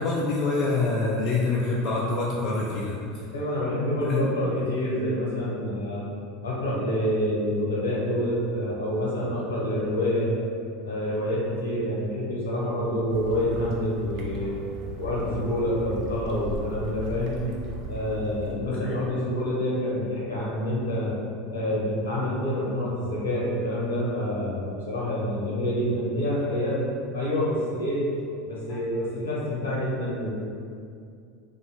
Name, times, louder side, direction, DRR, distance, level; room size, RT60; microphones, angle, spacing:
voice 1, 0.0-3.0 4.0-4.3 18.8-19.0 28.7-28.8, left 3 dB, 40° left, -4 dB, 0.3 m, -26 dB
voice 2, 3.3-6.0 6.4-10.3 10.8-14.5 15.0-17.4 17.8-21.1 21.5-26.8 27.1-28.0 28.4-30.3, left 1 dB, 75° left, -6 dB, 0.8 m, -27 dB
sound 1, 13.1-18.6, right 1 dB, 50° right, 0.4 m, -37 dB
2.6 x 2.1 x 2.7 m, 2.4 s
figure-of-eight pair, 80°, 0 cm